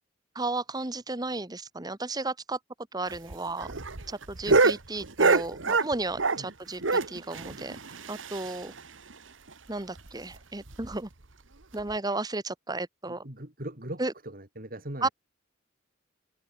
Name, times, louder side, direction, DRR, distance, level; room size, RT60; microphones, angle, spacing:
voice 1, 0.3-2.6 2.9-3.7 4.1-7.8 8.1-8.7 9.7-11.1 11.7-13.2 14.0-14.1 15.0-15.1, right 2 dB, 20° right, 1.4 m, -33 dB
sound 1, 3.1-6.5 6.8-8.8 9.1-9.2 9.5-9.6 10.0-10.1 10.7-11.0 11.8-11.9, right 3 dB, 80° right, 1.8 m, -26 dB
voice 2, 4.5-4.8 6.4-6.5 13.1-15.1, right 1 dB, 50° right, 5.2 m, -40 dB
head